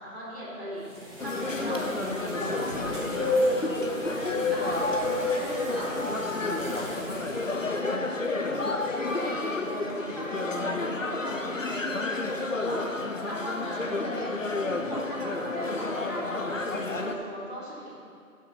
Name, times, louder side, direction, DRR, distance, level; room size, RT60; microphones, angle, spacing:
voice 1, 0.0-18.0, equal, 35° right, -8 dB, 3.3 m, -39 dB
sound 1, 0.9-7.5, left 2 dB, 20° right, 2.1 m, -31 dB
sound 2, 1.2-17.1, left 2 dB, 60° left, 1.0 m, -31 dB
14.0 x 6.5 x 5.7 m, 2.4 s
figure-of-eight pair, 170°, 44 cm